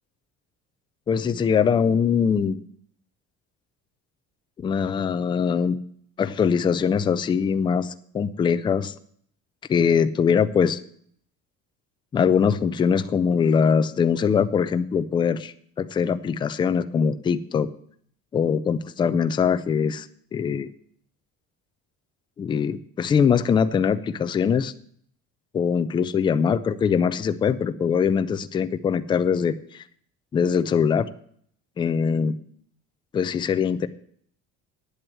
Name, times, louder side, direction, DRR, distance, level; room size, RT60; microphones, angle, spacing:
voice 1, 1.1-2.6 4.6-5.8 6.2-8.9 9.7-10.8 12.1-17.7 18.3-20.1 20.3-20.7 22.4-24.7 25.5-29.8 30.3-31.1 31.8-32.4 33.1-33.9, left 6 dB, 15° left, 11 dB, 0.4 m, -22 dB
9.5 x 7.7 x 7.6 m, 0.63 s
cardioid pair, 175°, 31 cm